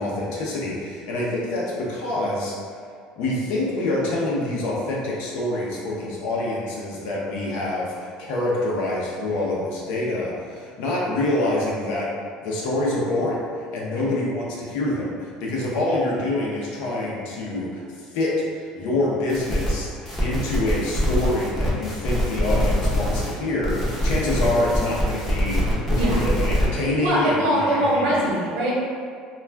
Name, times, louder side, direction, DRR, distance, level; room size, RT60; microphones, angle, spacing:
voice 1, 0.0-2.5 3.2-12.1 12.4-13.4 13.7-28.1, left 1 dB, 70° left, -4 dB, 0.7 m, -26 dB
sound 1, 19.3-19.7 20.1-23.3 23.6-26.7, equal, 5° left, 0.6 m, -24 dB
voice 2, 25.9-26.3 27.0-28.7, right 1 dB, 80° right, -5 dB, 0.9 m, -22 dB
2.3 x 2.2 x 3.3 m, 2.1 s
cardioid pair, 165°, 2 cm